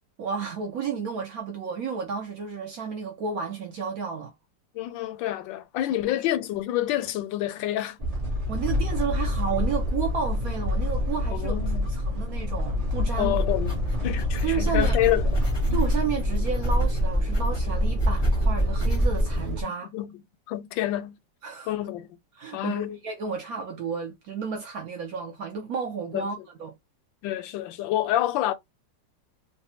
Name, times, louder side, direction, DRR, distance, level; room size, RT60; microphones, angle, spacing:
voice 1, 0.2-4.3 8.5-11.6 11.9-13.4 14.4-15.0 15.7-19.9 21.4-21.7 22.4-26.7, right 6 dB, 65° right, 0.9 m, -32 dB
voice 2, 4.7-8.0 11.3-11.9 13.2-13.8 14.0-15.4 19.6-20.2 20.5-21.2 21.7-22.2 22.5-23.0 26.1-26.3 27.2-28.5, left 13 dB, 85° left, 1.3 m, -28 dB
sound 1, 8.0-19.6, left 1 dB, 40° right, 0.5 m, -27 dB
sound 2, 13.3-19.5, right 1 dB, 25° left, 0.5 m, -28 dB
3.3 x 2.1 x 2.7 m
omnidirectional pair, 2.0 m